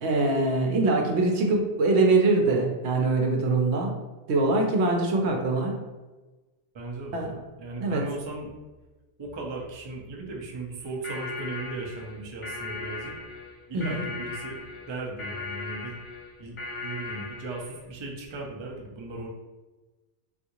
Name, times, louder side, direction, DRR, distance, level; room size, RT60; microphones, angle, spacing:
voice 1, 0.0-3.9 4.3-5.7 7.1-7.3 7.8-8.0 13.7-14.0, right 3 dB, 75° right, 1 dB, 0.9 m, -23 dB
voice 2, 6.7-7.3 7.6-8.5 9.2-13.1 13.7-16.0 16.4-16.6 16.8-19.3, right 2 dB, 40° right, -1 dB, 0.4 m, -37 dB
sound 1, 10.8-17.8, left 3 dB, 30° left, 0.8 m, -38 dB
3.5 x 2.4 x 2.8 m, 1.2 s
omnidirectional pair, 1.2 m